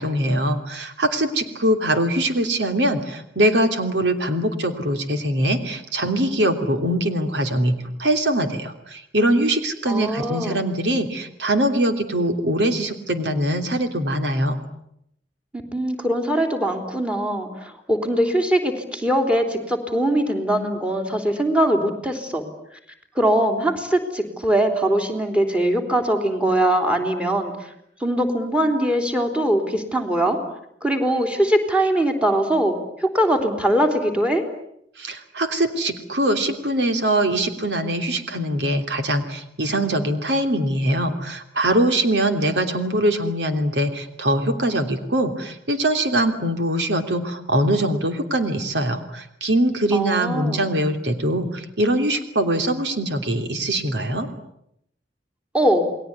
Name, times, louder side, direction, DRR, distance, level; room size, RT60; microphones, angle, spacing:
voice 1, 0.0-14.6 35.0-54.3, right 1 dB, 80° right, 6 dB, 3.1 m, -22 dB
voice 2, 9.9-10.6 15.5-22.4 23.2-27.5 28.0-30.4 30.8-34.4 49.9-50.6 55.5-55.9, right 1 dB, 5° right, 5 dB, 3.5 m, -21 dB
29.5 x 21.0 x 9.7 m, 0.76 s
head